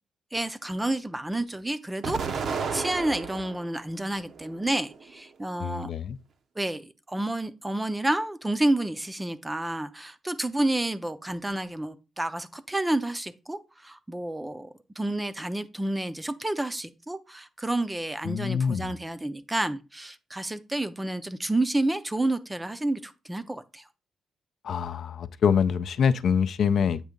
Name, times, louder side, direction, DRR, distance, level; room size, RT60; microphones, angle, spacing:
voice 1, 0.3-2.5 2.7-5.9 6.6-23.8, right 1 dB, 10° right, 0.5 m, -30 dB
Explosion, 2.0-3.7 4.2-5.1, right 5 dB, 60° right, 0.7 m, -32 dB
voice 2, 5.6-6.2 18.2-18.9 24.6-27.0, left 7 dB, 65° left, 0.4 m, -25 dB
8.0 x 2.7 x 5.0 m
cardioid pair, 135°, 0 cm